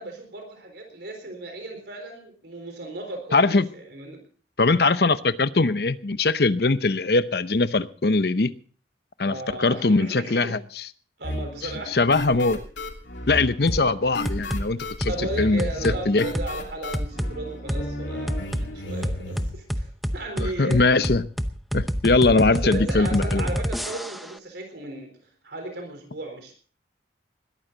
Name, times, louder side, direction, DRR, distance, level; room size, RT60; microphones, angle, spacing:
voice 1, 0.0-4.2 9.2-10.6 11.2-12.0 15.1-21.1 22.5-25.1 25.4-26.6, right 2 dB, 65° right, 4 dB, 4.0 m, -35 dB
voice 2, 3.3-3.7 4.6-8.5 9.2-10.9 11.6-12.6 13.3-16.3 20.4-21.2 21.7-23.5, left 3 dB, 60° left, 14 dB, 0.7 m, -21 dB
sound 1, 11.2-19.5, left 1 dB, 85° left, 3.0 m, -35 dB
sound 2, 13.7-13.9 14.2-14.6 15.0-15.2 15.6-16.0 16.3-16.5 16.9-17.3 17.7-17.8 18.3-18.7 19.0-24.3, equal, ahead, 0.7 m, -27 dB
20.5 x 13.5 x 3.9 m, 0.43 s
head